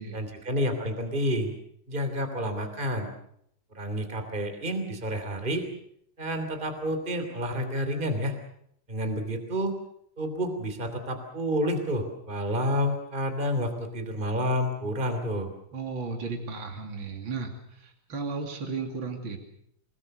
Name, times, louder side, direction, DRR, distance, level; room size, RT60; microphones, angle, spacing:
voice 1, 0.1-1.5 1.9-3.1 3.7-5.6 6.2-8.3 8.9-9.7 10.2-15.5, equal, 20° right, 7 dB, 3.2 m, -29 dB
voice 2, 15.7-19.4, right 4 dB, 65° right, 3 dB, 3.6 m, -35 dB
28.5 x 20.0 x 6.7 m, 0.71 s
omnidirectional pair, 2.3 m